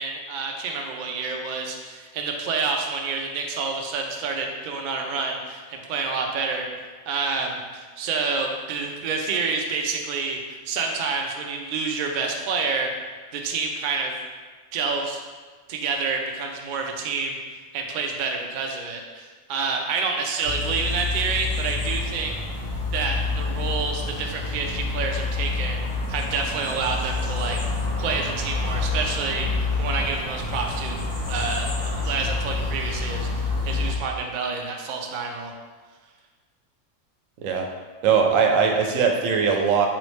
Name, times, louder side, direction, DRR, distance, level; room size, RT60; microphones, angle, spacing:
voice 1, 0.0-6.7 7.1-12.9 13.3-14.1 14.7-15.2 15.7-17.4 17.7-22.3 22.9-25.8 26.1-27.6 28.0-35.5, right 4 dB, 65° right, 2 dB, 0.5 m, -28 dB
sound 1, 20.4-34.0, left 3 dB, 80° left, 1.8 m, -28 dB
voice 2, 38.0-39.9, right 6 dB, 85° right, 2 dB, 1.0 m, -20 dB
3.8 x 3.2 x 3.0 m, 1.4 s
omnidirectional pair, 1.3 m